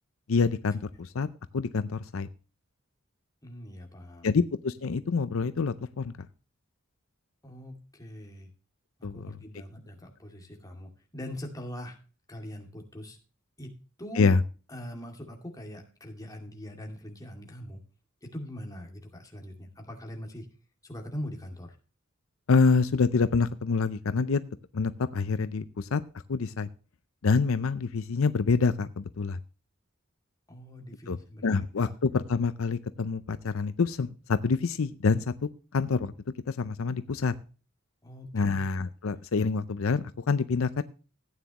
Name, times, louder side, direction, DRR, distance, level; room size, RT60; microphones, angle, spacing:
voice 1, 0.3-1.3 1.5-2.3 4.2-6.3 9.0-9.3 14.2-14.4 22.5-24.4 24.7-26.0 26.3-26.7 27.2-29.4 31.1-36.1 36.5-37.3 38.3-40.8, left 4 dB, 70° left, 13 dB, 0.5 m, -26 dB
voice 2, 3.4-4.3 7.4-8.5 9.0-12.0 12.3-13.2 13.6-14.3 14.7-17.8 18.2-20.5 20.8-21.8 30.5-31.5 31.8-31.9 38.0-38.7, equal, 15° left, 2 dB, 2.3 m, -42 dB
15.0 x 9.3 x 3.0 m, 0.35 s
head